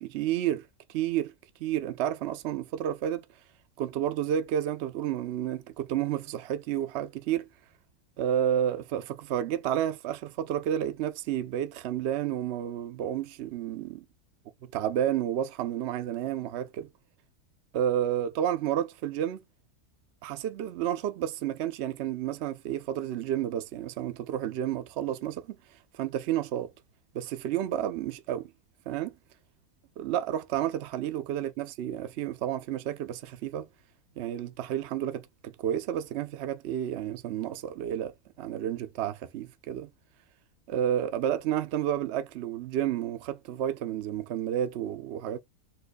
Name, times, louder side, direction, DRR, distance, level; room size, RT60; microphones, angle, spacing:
voice 1, 0.0-1.3 1.6-3.2 3.8-7.5 8.2-14.0 14.6-16.9 17.7-19.4 20.2-25.4 26.0-26.7 27.1-28.5 28.9-29.1 30.0-33.7 34.2-38.1 38.4-39.9 40.7-45.4, right 10 dB, 70° right, 0.6 m, -31 dB
4.5 x 2.5 x 2.2 m
omnidirectional pair, 1.6 m